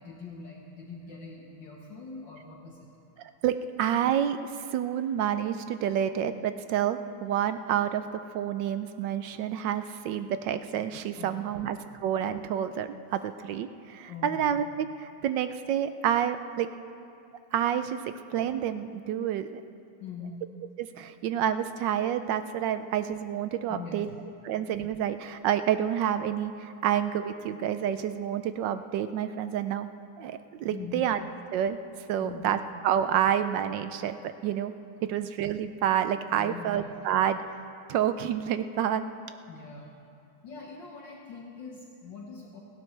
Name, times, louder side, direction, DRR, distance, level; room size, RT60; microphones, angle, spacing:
voice 1, 0.0-2.9 11.2-11.7 14.1-14.5 20.0-20.4 23.7-24.1 30.7-31.1 32.2-32.6 35.0-35.1 36.3-37.1 39.5-39.9 40.4-42.6, left 4 dB, 60° left, -1 dB, 1.8 m, -43 dB
voice 2, 3.2-16.7 17.5-18.0 18.3-19.6 20.8-24.1 24.4-29.9 30.2-31.2 31.5-31.8 32.1-32.6 32.8-34.7 35.1-37.4 37.9-39.0, right 9 dB, 75° right, 10 dB, 1.1 m, -29 dB
29.5 x 12.0 x 3.3 m, 2.5 s
omnidirectional pair, 2.3 m